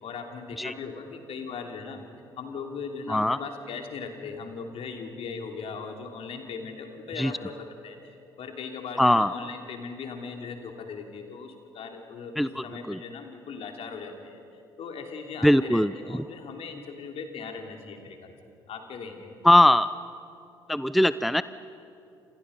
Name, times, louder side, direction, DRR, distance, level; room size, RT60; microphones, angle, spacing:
voice 1, 0.0-2.0 2.4-14.4 14.8-18.3 18.7-19.3, left 5 dB, 55° left, 4 dB, 3.1 m, -39 dB
voice 2, 9.0-9.3 12.4-13.0 15.4-16.2 19.4-19.9 20.7-21.4, left 1 dB, ahead, 15 dB, 0.5 m, -21 dB
29.5 x 27.5 x 5.4 m, 2.7 s
figure-of-eight pair, 50°, 12 cm